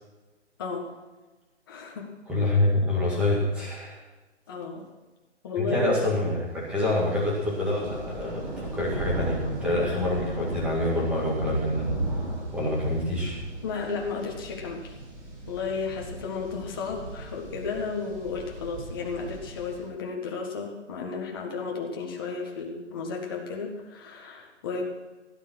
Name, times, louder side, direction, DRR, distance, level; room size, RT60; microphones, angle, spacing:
voice 1, 0.6-0.9 1.7-2.1 4.5-4.8 5.4-5.9 13.6-14.9 15.5-24.8, left 5 dB, 20° left, 0 dB, 1.7 m, -33 dB
voice 2, 2.3-4.0 5.6-11.8 12.5-13.4, left 1 dB, 5° right, -6 dB, 2.0 m, -26 dB
sound 1, 7.1-19.8, right 2 dB, 25° right, 4.5 m, -36 dB
16.5 x 9.6 x 6.2 m, 1.2 s
hypercardioid pair, 170°, 35 cm